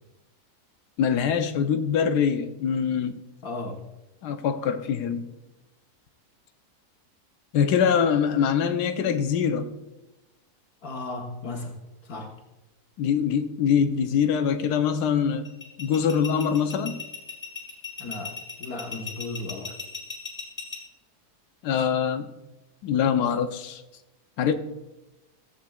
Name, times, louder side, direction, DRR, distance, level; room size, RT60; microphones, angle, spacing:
voice 1, 1.0-3.2 4.2-5.2 7.5-9.7 13.0-15.5 15.8-17.0 21.6-22.3 22.8-23.8 24.4-24.5, left 7 dB, 85° left, 8 dB, 1.3 m, -23 dB
voice 2, 3.4-3.8 10.8-12.3 18.0-18.3 18.6-19.8, left 2 dB, 70° left, 0 dB, 1.5 m, -35 dB
sound 1, 15.4-20.8, left 4 dB, 25° left, 3.4 m, -36 dB
16.0 x 8.3 x 2.3 m, 1.0 s
omnidirectional pair, 1.7 m